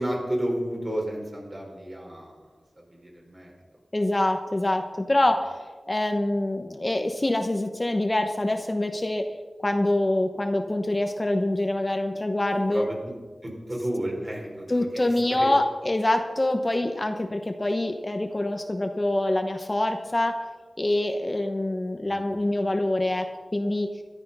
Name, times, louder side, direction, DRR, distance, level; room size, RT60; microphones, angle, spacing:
voice 1, 0.0-2.4 3.0-3.5 12.7-12.9 13.4-15.5 22.1-22.2, right 1 dB, 35° right, -1 dB, 5.0 m, -31 dB
voice 2, 3.9-5.5 5.9-9.2 9.6-12.9 14.7-20.3 20.8-23.2 23.5-23.9, left 1 dB, 30° left, 5 dB, 1.1 m, -25 dB
14.0 x 11.5 x 5.6 m, 1.4 s
cardioid pair, 50°, 0 cm